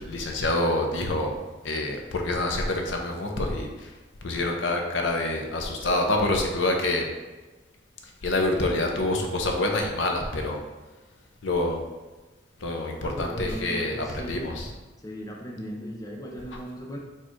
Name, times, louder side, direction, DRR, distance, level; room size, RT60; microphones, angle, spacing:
voice 1, 0.0-1.3 1.6-7.1 8.0-10.6 11.4-11.8 12.6-14.7, left 2 dB, 80° left, 2 dB, 0.6 m, -27 dB
voice 2, 13.0-14.5 15.0-17.0, right 1 dB, 20° left, -1 dB, 0.5 m, -37 dB
4.4 x 2.4 x 4.4 m, 1.2 s
head